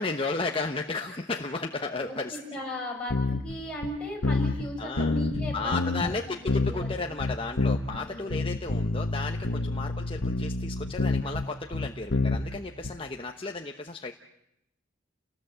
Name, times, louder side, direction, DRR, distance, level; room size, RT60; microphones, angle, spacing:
voice 1, 0.0-2.4 4.8-5.2 5.5-14.1, left 3 dB, 25° left, 3 dB, 1.0 m, -34 dB
voice 2, 2.0-6.9 7.9-8.5 9.4-9.9, equal, 5° left, -2 dB, 6.8 m, -37 dB
sound 1, 3.1-3.6 3.8-3.9 4.2-4.7 5.0-6.1 6.5-8.0 8.3-12.9, left 2 dB, 75° left, 1.3 m, -28 dB
29.0 x 19.0 x 7.9 m, 0.83 s
head